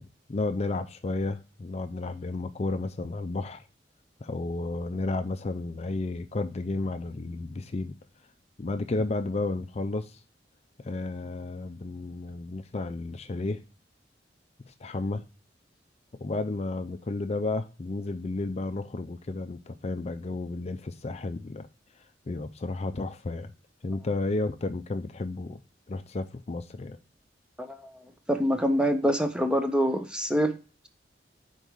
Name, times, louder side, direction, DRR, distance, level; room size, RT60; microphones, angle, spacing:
voice 1, 0.3-3.6 4.2-8.0 8.6-10.2 10.8-13.6 14.6-15.2 16.2-21.7 22.0-23.5 23.8-25.6 25.9-27.0, left 2 dB, 35° left, 0.4 m, -32 dB
voice 2, 28.3-30.5, equal, 5° right, 0.7 m, -25 dB
5.4 x 4.5 x 6.2 m
head